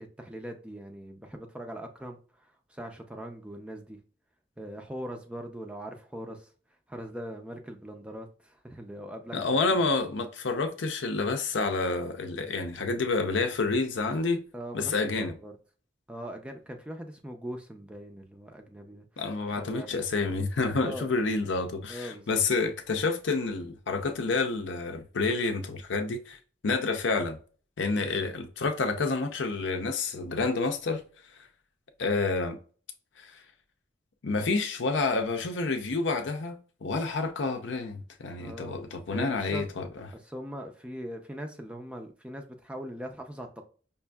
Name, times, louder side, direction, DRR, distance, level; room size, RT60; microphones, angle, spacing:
voice 1, 0.0-4.0 4.6-6.5 6.9-9.4 9.7-9.8 14.5-15.6 16.1-19.1 19.5-20.0 20.8-21.1 21.9-22.4 38.4-38.8 39.1-39.7 40.1-43.7, equal, 5° right, 0.4 m, -41 dB
voice 2, 9.3-14.4 14.7-15.3 19.2-26.4 26.6-27.4 27.8-31.0 32.0-32.6 33.2-33.4 34.2-39.9, left 3 dB, 80° left, 0.6 m, -29 dB
5.4 x 2.5 x 2.2 m
head